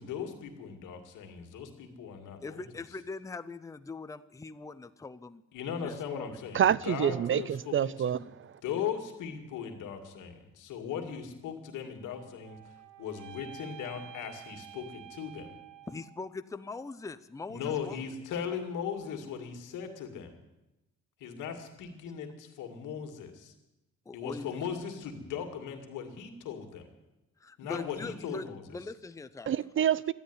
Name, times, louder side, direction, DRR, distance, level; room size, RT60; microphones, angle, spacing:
voice 1, 0.0-2.7 5.5-8.2 8.6-12.6 13.0-15.6 17.5-20.3 21.2-23.5 24.1-26.9 27.6-28.6, left 7 dB, 85° left, 2.2 m, -38 dB
voice 2, 2.4-5.4 5.8-6.4 15.9-18.1 24.1-24.6 27.4-29.7, left 3 dB, 10° left, 0.6 m, -42 dB
voice 3, 6.5-8.6 29.5-30.1, right 9 dB, 45° right, 0.5 m, -27 dB
sound 1, 12.0-16.3, right 11 dB, 85° right, 1.3 m, -50 dB
12.5 x 10.0 x 9.7 m
cardioid pair, 90°, 30 cm